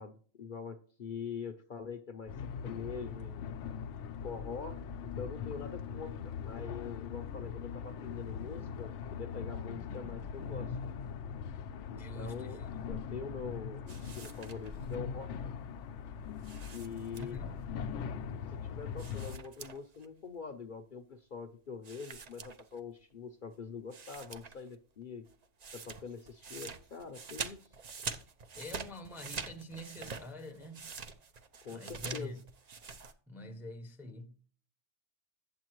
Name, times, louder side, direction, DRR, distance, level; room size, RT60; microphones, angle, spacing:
voice 1, 0.0-2.3 2.6-3.4 4.2-4.8 5.2-10.8 11.9-15.3 16.7-17.4 18.5-25.2 25.7-27.6 31.6-32.3, left 5 dB, 50° left, 0.7 m, -44 dB
sound 1, 2.3-19.4, left 7 dB, 80° left, 0.9 m, -41 dB
voice 2, 11.9-12.7 17.1-17.6 28.6-30.9 31.7-32.4 33.3-34.4, left 1 dB, ahead, 0.6 m, -45 dB
sound 2, 13.9-14.9 16.4-17.6 19.0-20.1 20.3-20.4 21.8-23.0 23.5-23.6 23.9-24.7 25.0-33.1, right 5 dB, 45° right, 0.6 m, -45 dB
8.2 x 7.8 x 3.0 m
omnidirectional pair, 1.2 m